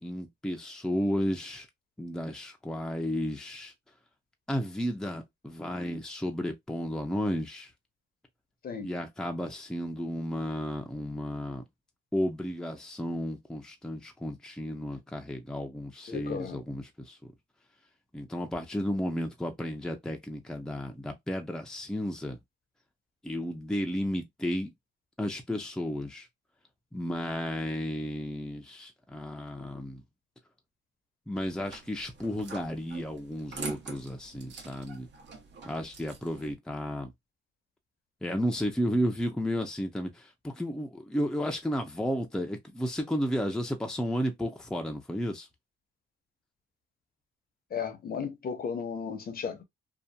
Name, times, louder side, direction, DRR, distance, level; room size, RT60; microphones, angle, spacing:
voice 1, 0.0-1.7 2.0-3.7 4.5-7.7 8.8-11.6 12.1-17.3 18.1-22.4 23.2-24.7 25.2-26.3 26.9-30.0 31.3-35.1 35.6-37.1 38.2-45.5, equal, 5° left, 0.6 m, -33 dB
voice 2, 16.1-16.6 47.7-49.6, left 6 dB, 50° left, 0.8 m, -35 dB
sound 1, 31.4-36.5, right 5 dB, 65° right, 1.0 m, -45 dB
2.7 x 2.4 x 2.2 m
cardioid pair, 90°, 20 cm